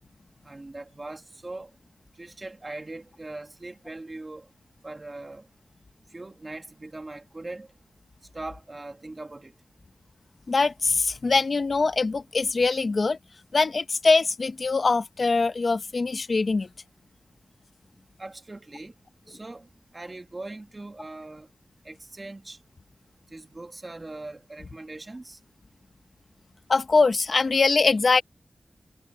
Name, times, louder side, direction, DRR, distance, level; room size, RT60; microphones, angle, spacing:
voice 1, 0.4-1.7 2.2-4.5 4.8-5.5 6.1-7.7 8.3-9.5 18.2-18.9 19.3-19.7 19.9-21.5 21.8-22.6 23.3-25.4, right 2 dB, 30° right, 2.2 m, -40 dB
voice 2, 10.5-13.2 13.5-16.7 26.7-28.2, left 4 dB, 55° left, 1.1 m, -22 dB
wide cardioid pair, 105°, 0 cm